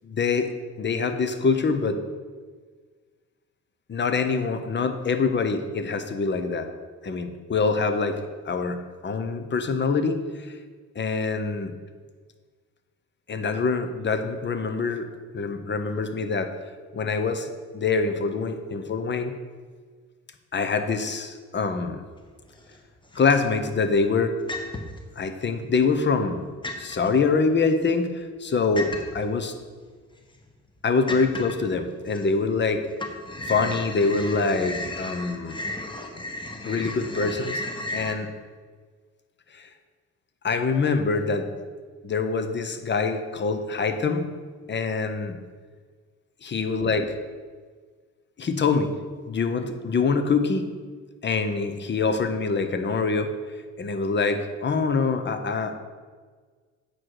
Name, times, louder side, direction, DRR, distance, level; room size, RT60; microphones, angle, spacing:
voice 1, 0.0-0.5 0.8-2.0 3.9-6.7 7.0-8.2 8.5-8.8 9.0-10.2 11.0-11.7 13.3-15.1 15.3-16.5 16.9-19.3 20.5-22.0 23.1-24.3 25.2-26.4 26.8-29.5 30.8-32.8 33.5-35.6 36.6-37.6 37.9-38.3 40.4-41.5 42.0-44.2 44.7-45.4 46.4-47.1 48.4-48.9 49.3-50.7 51.2-53.3 53.8-55.8, left 4 dB, 35° left, 8 dB, 0.9 m, -25 dB
sound 1, 22.3-22.8 23.1-23.7 24.5-25.1 25.6-26.4 26.6-27.1 28.8-29.3 29.9-30.0 30.4-30.5 31.1-31.7 32.1-32.7 32.9-38.1, left 2 dB, 15° left, 1.2 m, -34 dB
8.7 x 6.2 x 4.8 m, 1.5 s
cardioid pair, 90°, 30 cm